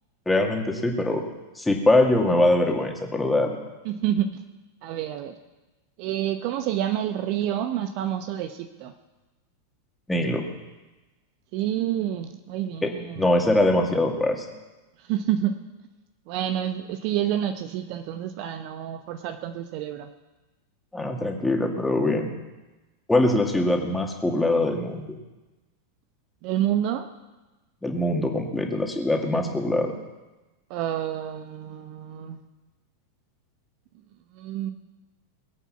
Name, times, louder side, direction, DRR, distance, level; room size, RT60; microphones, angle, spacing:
voice 1, 0.3-1.2 1.6-3.6 10.1-10.5 12.8-12.9 13.2-14.4 20.9-22.3 23.1-25.1 27.8-29.9, left 1 dB, 5° left, 1 dB, 2.3 m, -22 dB
voice 2, 3.8-4.4 4.8-5.4 6.0-8.9 11.5-13.3 15.0-15.6 16.3-20.1 26.4-27.1 30.7-32.4 34.3-34.7, right 11 dB, 45° right, 8 dB, 0.9 m, -28 dB
22.0 x 8.3 x 6.0 m, 1.1 s
figure-of-eight pair, 90°, 0 cm